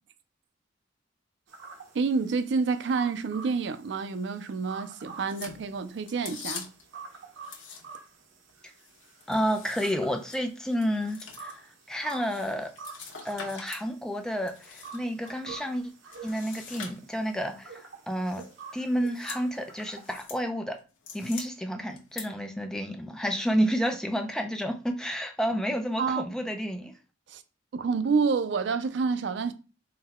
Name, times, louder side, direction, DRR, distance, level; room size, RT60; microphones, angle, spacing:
sound 1, 1.5-20.2, right 5 dB, 85° right, 0.8 m, -49 dB
voice 1, 1.9-6.7 26.0-26.3 27.3-27.4 27.7-29.5, right 5 dB, 60° right, 0.4 m, -28 dB
sound 2, 5.3-6.9 7.4-8.1 8.5-13.9 14.2-15.3 16.1-17.4 18.2-18.5 18.9-19.4 19.8-20.4 20.8-21.4 22.0-22.2, left 6 dB, 90° left, 0.9 m, -44 dB
voice 2, 9.3-12.7 13.2-15.9 16.2-18.4 18.7-20.8 21.1-26.9, equal, 5° left, 0.4 m, -30 dB
3.9 x 2.2 x 4.2 m
head